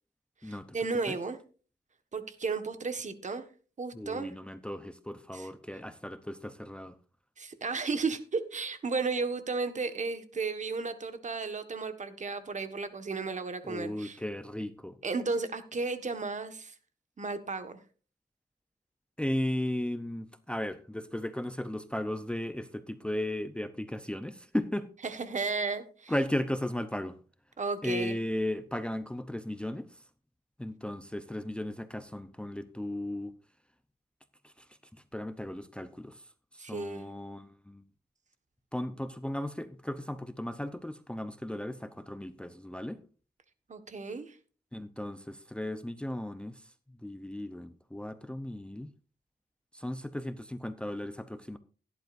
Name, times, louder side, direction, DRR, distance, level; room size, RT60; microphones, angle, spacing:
voice 1, 0.4-1.4 2.1-3.4 3.8-4.3 5.3-5.5 7.4-14.2 15.0-16.7 17.2-17.8 25.0-26.1 27.6-28.2 36.6-37.1 43.7-44.4, right 4 dB, 45° right, 1.5 m, -34 dB
voice 2, 3.9-7.0 13.6-15.0 19.2-24.9 26.1-27.2 27.8-29.9 30.6-33.3 34.4-34.5 35.1-36.2 36.5-37.8 38.7-43.0 44.7-46.7 47.0-48.9 49.7-51.6, left 1 dB, 5° left, 0.7 m, -36 dB
16.5 x 11.0 x 2.6 m
wide cardioid pair, 115°, 17 cm